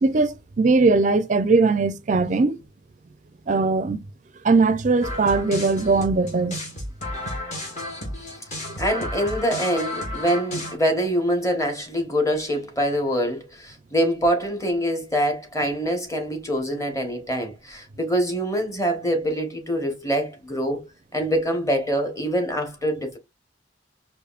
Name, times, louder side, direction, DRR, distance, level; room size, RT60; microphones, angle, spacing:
voice 1, 0.0-2.6 3.5-4.0 4.4-6.6, right 3 dB, 40° right, 0.4 m, -20 dB
sound 1, 5.0-10.8, left 1 dB, 40° left, 1.6 m, -32 dB
voice 2, 8.8-20.8 21.1-23.2, equal, 15° left, 1.0 m, -24 dB
4.9 x 2.6 x 2.4 m
head